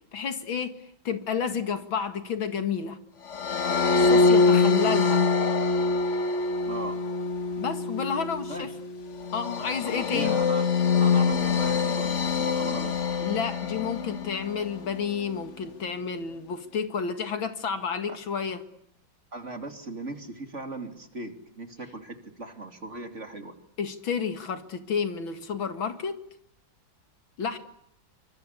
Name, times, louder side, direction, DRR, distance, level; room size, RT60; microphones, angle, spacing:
voice 1, 0.1-0.8 1.0-3.0 3.9-5.2 7.6-8.7 9.3-10.4 13.2-18.6 23.8-26.2 27.4-27.6, left 6 dB, 80° left, 2.8 m, -30 dB
sound 1, 3.3-14.6, left 4 dB, 40° left, 1.4 m, -24 dB
voice 2, 6.6-7.0 8.5-8.7 9.9-10.7 11.0-13.4 18.1-18.2 19.3-23.5, right 2 dB, 35° right, 3.1 m, -38 dB
27.0 x 24.5 x 8.5 m
omnidirectional pair, 2.2 m